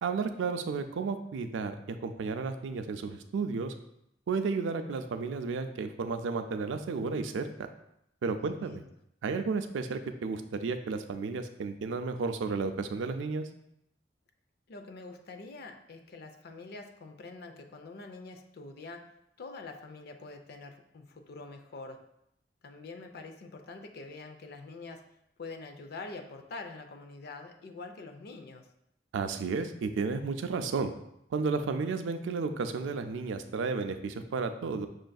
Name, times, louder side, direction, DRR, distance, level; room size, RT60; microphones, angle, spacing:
voice 1, 0.0-3.7 4.3-7.7 8.2-8.8 9.2-13.5 29.1-30.9 31.3-34.9, right 4 dB, 85° right, 8 dB, 0.4 m, -32 dB
voice 2, 8.4-8.9 14.7-19.1 19.4-22.0 22.6-25.0 25.4-28.7, left 3 dB, 60° left, 6 dB, 0.4 m, -45 dB
6.2 x 2.5 x 2.3 m, 0.78 s
head